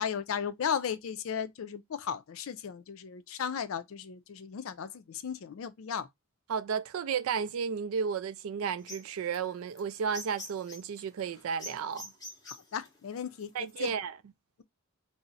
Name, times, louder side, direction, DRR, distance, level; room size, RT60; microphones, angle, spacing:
voice 1, 0.0-6.1 12.5-13.9, left 7 dB, 65° left, 0.4 m, -35 dB
voice 2, 6.5-12.1 13.5-14.1, right 6 dB, 70° right, 0.3 m, -33 dB
sound 1, 8.8-13.9, left 1 dB, 15° left, 0.7 m, -46 dB
2.4 x 2.0 x 3.9 m
head